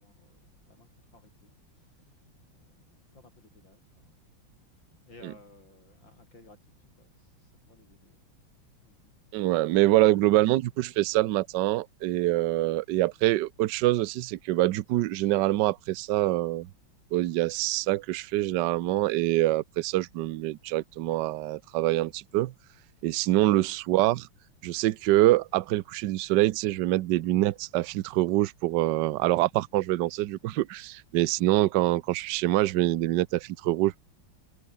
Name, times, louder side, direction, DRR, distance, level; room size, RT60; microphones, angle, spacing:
voice 1, 0.0-8.4 8.8-9.2 9.8-10.4 12.5-12.7 23.2-23.5 25.1-25.2 27.9-28.0 31.4-31.7, left 2 dB, 65° left, 8.0 m, -58 dB
voice 2, 9.3-16.7 17.1-22.5 23.0-24.3 24.6-34.1, right 16 dB, 70° right, 1.2 m, -25 dB
omnidirectional pair, 2.2 m